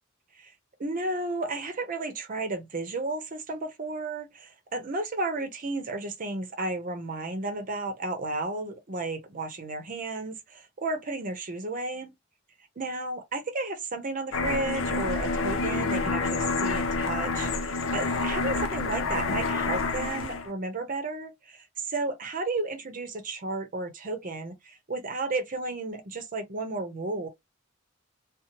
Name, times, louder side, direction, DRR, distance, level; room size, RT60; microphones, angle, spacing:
voice 1, 0.8-12.2 12.8-27.3, right 2 dB, 45° right, 0.7 m, -33 dB
sound 1, 14.3-20.5, left 3 dB, 90° left, 0.6 m, -28 dB
2.7 x 2.1 x 2.8 m
head